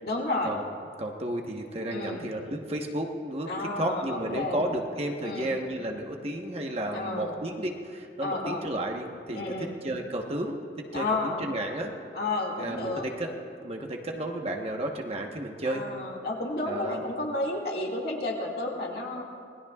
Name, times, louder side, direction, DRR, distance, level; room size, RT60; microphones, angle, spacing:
voice 1, 0.0-0.5 1.9-2.2 3.5-4.6 5.2-5.5 6.9-7.4 8.2-8.7 9.3-9.7 10.9-11.5 12.1-13.1 15.6-19.2, left 2 dB, 55° left, -2 dB, 2.2 m, -31 dB
voice 2, 1.0-11.9 12.6-13.3 13.6-15.8 16.7-17.0, right 1 dB, 35° right, 2 dB, 1.2 m, -32 dB
27.0 x 19.5 x 2.4 m, 2.3 s
head